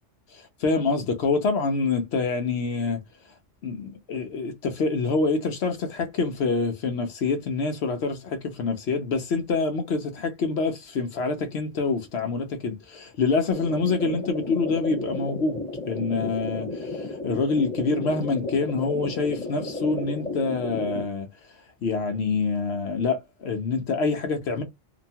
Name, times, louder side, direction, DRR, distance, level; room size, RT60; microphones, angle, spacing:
voice 1, 0.3-3.0 3.6-15.6 15.9-21.3 21.8-24.6, left 4 dB, 65° left, 0.9 m, -26 dB
sound 1, 13.5-21.0, left 2 dB, 5° left, 1.1 m, -33 dB
2.9 x 2.1 x 2.7 m
omnidirectional pair, 1.3 m